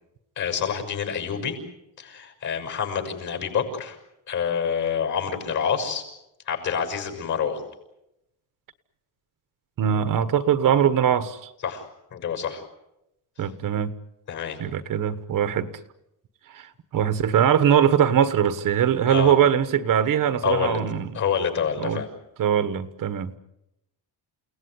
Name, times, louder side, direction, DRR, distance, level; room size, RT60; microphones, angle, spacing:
voice 1, 0.4-1.6 2.0-4.0 4.3-6.0 6.5-7.6 11.6-11.8 12.1-12.6 14.3-14.6 19.1-19.3 20.4-20.8 21.1-22.1, left 7 dB, 45° left, 6.6 m, -27 dB
voice 2, 9.8-11.5 13.4-13.9 14.6-15.8 16.5-21.2 21.8-22.0 22.4-23.4, right 9 dB, 55° right, 1.3 m, -22 dB
29.5 x 18.0 x 9.7 m
cardioid pair, 180°, 40 cm